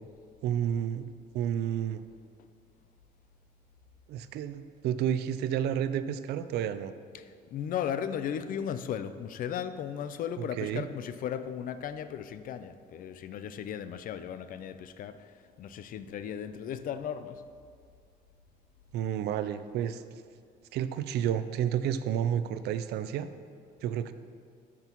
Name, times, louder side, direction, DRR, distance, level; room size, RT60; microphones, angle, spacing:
voice 1, 0.4-1.1 1.3-2.0 4.1-6.9 10.4-10.9 18.9-20.0 20.7-23.3 23.8-24.1, right 9 dB, 75° right, 12 dB, 0.4 m, -30 dB
voice 2, 7.1-15.3 15.6-17.4, left 8 dB, 55° left, 11 dB, 0.4 m, -36 dB
12.5 x 6.0 x 3.0 m, 2.2 s
cardioid pair, 110°, 17 cm